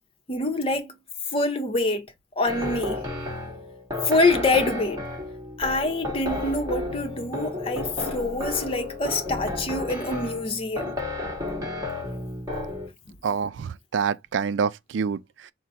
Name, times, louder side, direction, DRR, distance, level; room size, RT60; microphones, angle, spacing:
voice 1, 0.3-0.9 1.3-2.1 2.4-3.0 4.0-5.0 5.6-11.0, left 2 dB, 30° left, 0.8 m, -25 dB
sound 1, 2.4-12.9, left 2 dB, 20° right, 1.5 m, -32 dB
voice 2, 13.2-15.5, right 6 dB, 75° right, 0.4 m, -27 dB
4.7 x 2.1 x 4.2 m
head